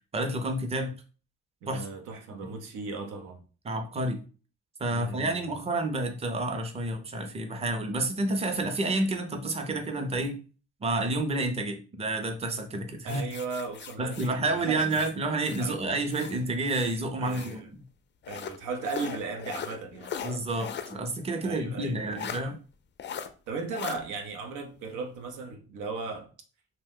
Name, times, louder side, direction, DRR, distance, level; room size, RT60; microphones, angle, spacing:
voice 1, 0.1-0.9 1.7-1.9 3.6-4.2 4.8-10.4 10.8-13.2 14.0-17.6 20.2-22.6, right 2 dB, 20° right, 0.5 m, -29 dB
voice 2, 1.6-3.4 4.9-5.5 13.0-14.9 15.6-15.8 17.2-17.7 18.3-20.2 21.4-22.3 23.5-26.3, right 4 dB, 90° right, 0.7 m, -36 dB
sound 1, 13.1-15.7 16.1-17.6 18.2-21.0 21.3-21.4 22.1-22.4 23.0-23.3 23.7-24.0, left 8 dB, 40° left, 0.4 m, -39 dB
2.7 x 2.1 x 3.6 m
cardioid pair, 90°, 30 cm